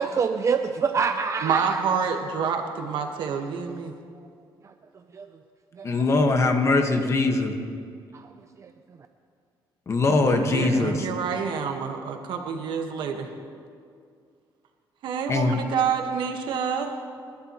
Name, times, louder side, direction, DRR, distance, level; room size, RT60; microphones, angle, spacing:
voice 1, 0.0-1.8 3.7-3.8 4.6-4.7 5.1-5.3 5.7-6.4 6.7-7.1 8.1-8.3 8.6-9.0, right 5 dB, 40° right, 7 dB, 0.6 m, -28 dB
voice 2, 1.4-3.9 10.3-13.3 15.0-16.9, right 6 dB, 75° right, 4 dB, 1.6 m, -28 dB
voice 3, 5.8-7.6 9.9-11.1 15.3-15.6, left 3 dB, 35° left, 4 dB, 1.6 m, -22 dB
29.0 x 11.5 x 3.1 m, 2.3 s
cardioid pair, 110°, 8 cm